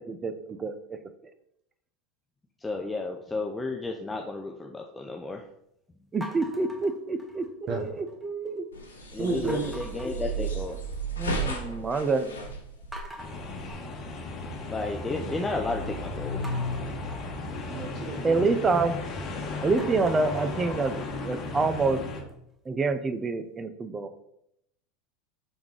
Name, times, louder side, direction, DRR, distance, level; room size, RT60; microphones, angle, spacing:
voice 1, 0.1-0.7 6.1-8.6 11.2-12.5 18.2-19.0 19.6-22.0 22.7-24.2, right 3 dB, 25° right, 10 dB, 0.7 m, -27 dB
voice 2, 2.6-5.4 9.1-10.8 14.7-16.6, left 3 dB, 15° left, 2 dB, 0.6 m, -33 dB
sound 1, 6.2-7.7 8.1-8.6 9.5-11.0 11.3-11.9 12.3-12.4 12.9-15.0 16.4-19.2 19.6-22.5, right 1 dB, 5° right, 1.3 m, -47 dB
sound 2, 8.7-13.7, right 3 dB, 90° left, 0.8 m, -34 dB
voice 3, 9.2-9.7 17.7-18.4, right 3 dB, 50° right, 2 dB, 1.0 m, -31 dB
sound 3, 13.2-22.2, left 3 dB, 45° left, 1.2 m, -34 dB
5.4 x 3.6 x 4.8 m, 0.78 s
hypercardioid pair, 85°, 0 cm